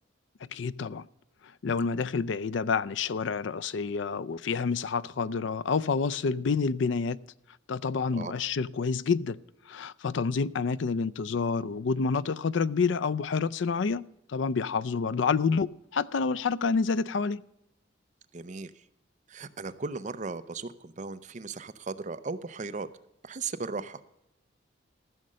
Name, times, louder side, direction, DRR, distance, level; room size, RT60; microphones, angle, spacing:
voice 1, 0.5-1.0 1.6-7.2 7.7-9.4 9.7-17.4, left 5 dB, 65° left, 0.4 m, -28 dB
voice 2, 18.3-18.7 19.3-22.9 23.2-24.0, right 4 dB, 35° right, 0.5 m, -36 dB
14.5 x 6.6 x 6.3 m
head